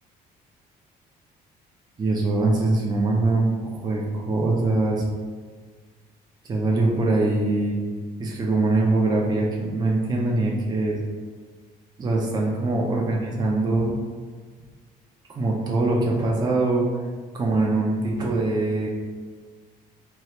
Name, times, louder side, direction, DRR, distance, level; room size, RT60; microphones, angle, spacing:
voice 1, 2.0-5.0 6.4-7.8 8.2-11.0 12.0-14.0 15.3-16.9 17.3-18.9, right 2 dB, 25° right, -2 dB, 0.5 m, -23 dB
3.1 x 2.4 x 2.9 m, 1.5 s
cardioid pair, 110°, 17 cm